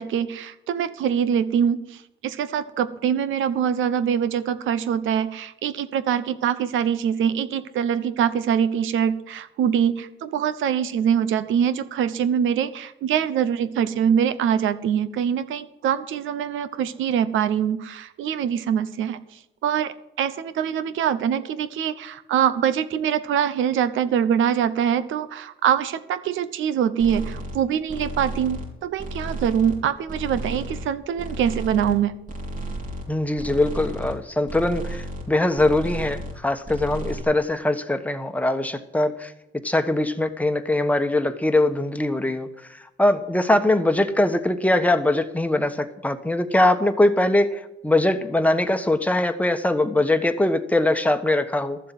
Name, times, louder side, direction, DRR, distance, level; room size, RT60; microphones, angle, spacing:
voice 1, 0.0-19.2 19.6-32.1, right 8 dB, 80° right, 14 dB, 1.0 m, -24 dB
sound 1, 27.0-27.6 27.9-28.7 29.0-29.8 30.1-30.9 31.2-32.0 32.3-33.1 33.4-34.1 34.5-35.3 35.5-36.4 36.6-37.2, right 1 dB, 45° right, 4.0 m, -33 dB
voice 2, 33.1-39.3 39.6-42.5 43.0-51.8, left 1 dB, 5° left, 7 dB, 1.3 m, -22 dB
13.5 x 7.6 x 7.6 m, 0.88 s
cardioid pair, 90°, 20 cm